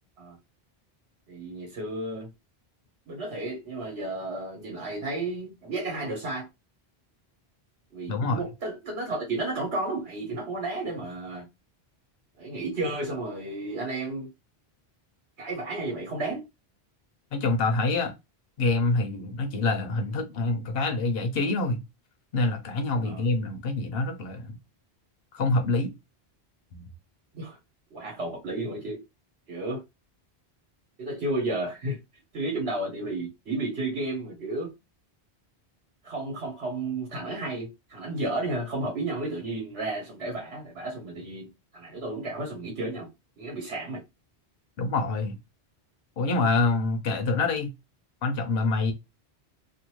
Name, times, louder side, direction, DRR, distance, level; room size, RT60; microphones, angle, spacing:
voice 1, 1.3-2.3 3.1-6.5 7.9-11.4 12.4-14.3 15.4-16.4 23.0-23.2 27.3-27.6 27.9-29.0 29.5-29.8 31.0-32.0 32.3-34.7 36.0-41.5 41.7-43.1 43.4-44.0, right 2 dB, 80° right, 1.4 m, -32 dB
voice 2, 8.1-8.4 17.3-18.1 18.6-21.8 22.3-24.6 25.3-25.9 26.7-26.9 44.8-45.3 46.2-47.7 48.2-48.9, left 3 dB, 65° left, 0.9 m, -26 dB
2.6 x 2.6 x 3.0 m
omnidirectional pair, 1.1 m